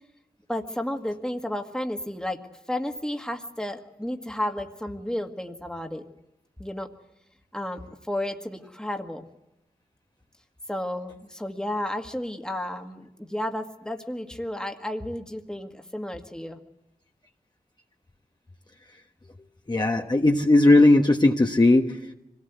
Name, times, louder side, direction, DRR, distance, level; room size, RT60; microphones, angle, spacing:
voice 1, 0.5-2.4 2.7-6.0 6.6-6.9 7.5-9.2 10.7-16.6, left 1 dB, 5° left, 4 dB, 1.8 m, -32 dB
voice 2, 19.7-22.1, left 2 dB, 30° left, 1 dB, 1.3 m, -18 dB
25.5 x 18.0 x 8.2 m, 0.88 s
wide cardioid pair, 85°, 15 cm